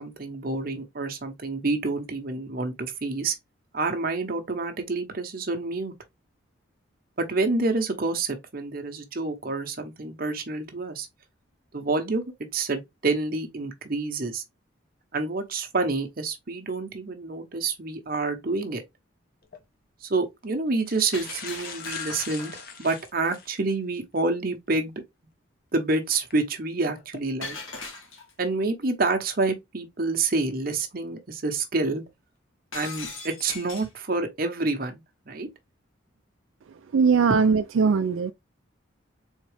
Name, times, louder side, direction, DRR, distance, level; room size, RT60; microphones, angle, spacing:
voice 1, 0.0-3.3 3.7-5.9 7.2-11.1 11.7-12.2 12.5-14.4 15.1-18.8 20.0-22.5 22.8-24.9 25.7-27.6 28.4-32.0 32.7-35.5 37.3-37.4, right 3 dB, 45° right, 0.9 m, -28 dB
sound 1, 19.4-19.6 20.4-20.5 20.8-23.6 24.1-24.2 26.1-26.3 26.9-27.2, left 6 dB, 45° left, 0.9 m, -41 dB
Shatter, 21.1-22.8 27.4-28.5 32.7-34.0, left 4 dB, 90° left, 1.7 m, -39 dB
voice 2, 36.9-38.3, right 5 dB, 80° right, 0.4 m, -20 dB
4.0 x 3.6 x 3.3 m
head